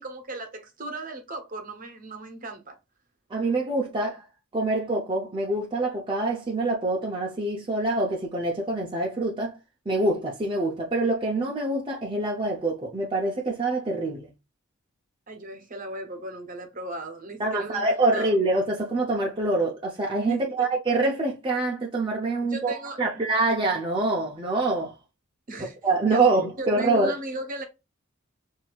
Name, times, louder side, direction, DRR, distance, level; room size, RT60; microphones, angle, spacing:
voice 1, 0.0-2.8 15.3-17.9 18.1-18.3 20.3-20.7 22.4-23.3 25.5-25.7 26.1-26.2 26.6-27.6, right 1 dB, 45° right, 0.9 m, -36 dB
voice 2, 3.3-4.2 4.5-9.6 9.9-14.3 17.4-24.9 25.8-27.1, right 2 dB, 25° right, 0.7 m, -25 dB
6.1 x 2.7 x 2.4 m
head